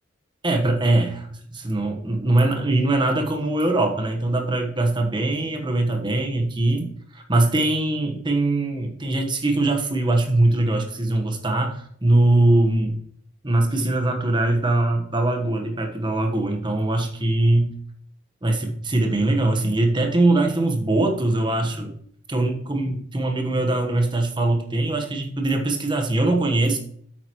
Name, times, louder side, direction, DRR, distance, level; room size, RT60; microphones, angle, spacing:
voice 1, 0.4-13.0 13.4-17.7 18.4-21.9 22.3-26.8, right 2 dB, 25° right, 4 dB, 1.2 m, -22 dB
8.9 x 8.0 x 3.1 m, 0.64 s
head